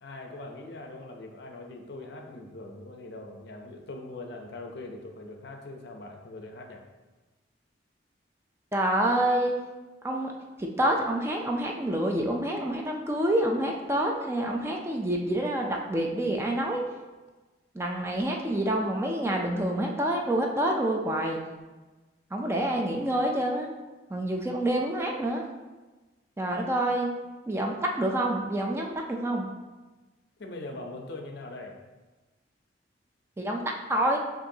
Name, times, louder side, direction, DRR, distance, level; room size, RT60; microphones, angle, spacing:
voice 1, 0.0-6.8 30.4-31.8, left 2 dB, 60° left, 2 dB, 0.6 m, -41 dB
voice 2, 8.7-9.5 10.0-16.8 17.7-21.4 22.3-23.7 24.1-25.4 26.4-27.1 27.5-29.5 33.4-33.6 33.9-34.2, right 1 dB, 15° right, 1 dB, 0.4 m, -27 dB
7.5 x 2.6 x 2.7 m, 1.2 s
head